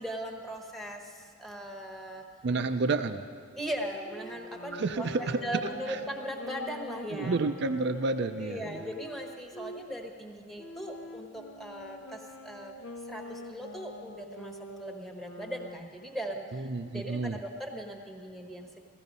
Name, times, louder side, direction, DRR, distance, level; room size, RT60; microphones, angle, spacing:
voice 1, 0.0-2.2 3.6-7.4 8.4-12.7 13.1-16.7 16.9-18.8, right 1 dB, ahead, 3 dB, 1.1 m, -39 dB
voice 2, 2.4-3.2 4.7-5.6 5.9-6.0 7.1-8.8 16.5-17.4, right 3 dB, 55° right, 9 dB, 0.5 m, -30 dB
Wind instrument woodwind instrument, 4.0-9.8 10.6-16.0, left 1 dB, 70° left, 0.9 m, -45 dB
16.0 x 14.5 x 5.4 m, 2.2 s
head